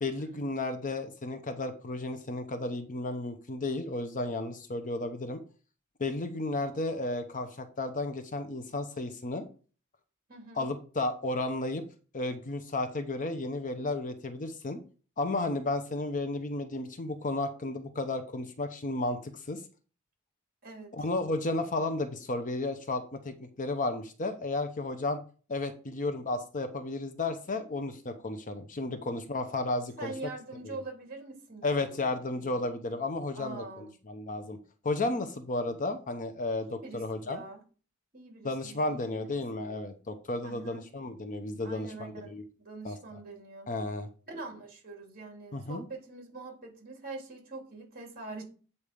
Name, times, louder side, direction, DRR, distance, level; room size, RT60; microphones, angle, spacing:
voice 1, 0.0-5.4 6.0-9.4 10.6-11.8 12.1-14.8 15.2-19.6 21.0-25.2 25.5-30.1 30.6-30.8 31.6-34.6 34.8-37.4 38.4-42.4 42.8-43.0 43.7-44.1 45.5-45.8, left 2 dB, 35° left, 8 dB, 0.8 m, -33 dB
voice 2, 10.3-10.7 20.6-21.1 30.0-32.6 33.3-33.9 36.6-37.6 38.1-39.8 40.4-40.9 41.6-43.7 44.3-48.4, right 3 dB, 40° right, 1 dB, 3.1 m, -44 dB
8.4 x 4.2 x 5.1 m, 0.38 s
head